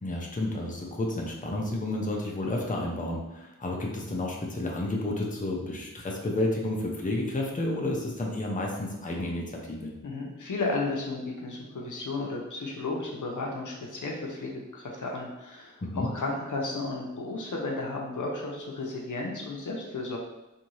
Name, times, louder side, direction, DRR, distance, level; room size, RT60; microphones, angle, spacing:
voice 1, 0.0-9.9 15.8-16.1, left 1 dB, 25° left, -1 dB, 0.5 m, -31 dB
voice 2, 10.0-20.2, left 3 dB, 70° left, -1 dB, 0.6 m, -33 dB
2.7 x 2.6 x 3.0 m, 0.97 s
wide cardioid pair, 65°, 31 cm